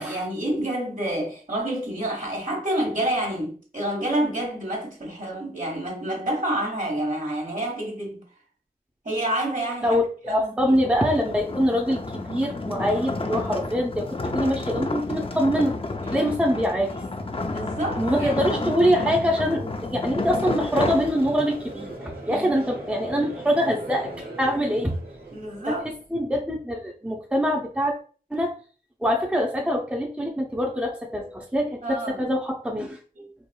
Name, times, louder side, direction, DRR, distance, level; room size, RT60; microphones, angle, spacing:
voice 1, 0.0-8.2 9.0-10.9 16.0-16.6 17.5-18.9 22.3-22.7 25.3-25.9 31.8-32.3 33.2-33.3, right 1 dB, 55° right, 1.3 m, -29 dB
voice 2, 9.8-14.1 14.3-15.7 16.1-17.0 18.0-24.9 25.7-25.8 26.1-27.9 28.3-28.5 29.0-33.0, equal, 5° right, 0.7 m, -24 dB
sound 1, 10.8-21.7, left 3 dB, 35° left, 0.5 m, -31 dB
Conversation / Crowd, 20.8-26.1, right 1 dB, 75° right, 1.0 m, -40 dB
4.6 x 2.5 x 2.2 m
wide cardioid pair, 45°, 16 cm